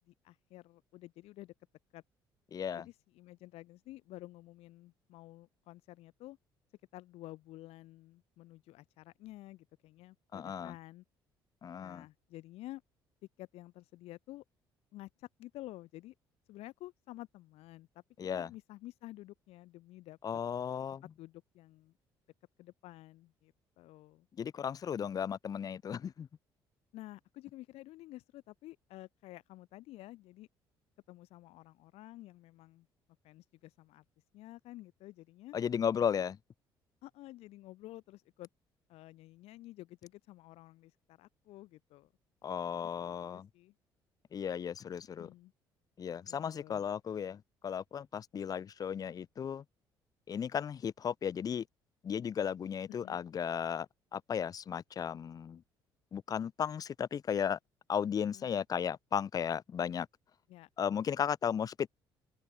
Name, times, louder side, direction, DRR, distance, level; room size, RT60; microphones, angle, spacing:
voice 1, 0.0-1.5 1.9-2.0 2.7-6.4 6.9-11.0 11.8-12.8 13.4-14.4 14.9-16.1 16.5-18.0 18.3-20.2 20.9-21.9 22.6-24.3 26.9-30.5 31.1-32.9 33.2-34.0 34.3-35.6 37.0-38.5 38.9-42.1 42.7-43.7 45.2-45.5 46.2-46.8 53.0-53.2 58.3-58.6 60.5-60.7, left 17 dB, 60° left, 0.9 m, -51 dB
voice 2, 2.5-2.8 10.3-10.7 11.6-12.1 18.2-18.5 20.2-21.0 24.4-26.3 35.5-36.4 42.4-43.5 44.3-45.3 46.0-49.6 50.3-51.6 52.0-55.6 56.1-57.6 57.9-60.1 60.8-61.9, left 8 dB, 30° left, 0.4 m, -35 dB
figure-of-eight pair, 50°, 12 cm